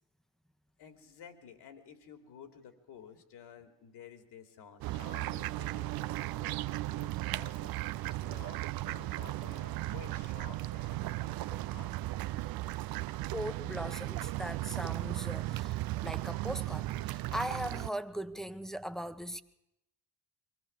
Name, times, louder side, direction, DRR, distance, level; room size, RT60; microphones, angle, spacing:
voice 1, 0.8-12.1, left 7 dB, 55° left, 3.3 m, -53 dB
sound 1, 4.8-17.9, right 17 dB, 50° right, 0.7 m, -36 dB
voice 2, 13.3-19.4, equal, ahead, 1.3 m, -39 dB
24.0 x 16.0 x 7.3 m
figure-of-eight pair, 50°, 47 cm